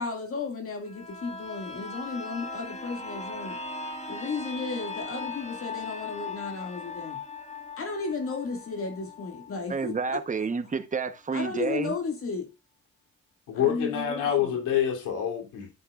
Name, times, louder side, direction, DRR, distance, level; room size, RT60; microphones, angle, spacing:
voice 1, 0.0-3.6 4.1-7.2 7.8-10.2 11.3-12.5 13.5-14.6, left 4 dB, 45° left, 2.2 m, -34 dB
sound 1, 0.8-10.4 10.8-10.9, left 3 dB, 20° left, 1.7 m, -39 dB
voice 2, 9.7-11.9, right 5 dB, 25° right, 1.1 m, -30 dB
voice 3, 13.5-15.7, left 9 dB, 90° left, 3.2 m, -27 dB
11.0 x 8.5 x 2.5 m
cardioid pair, 90°, 30 cm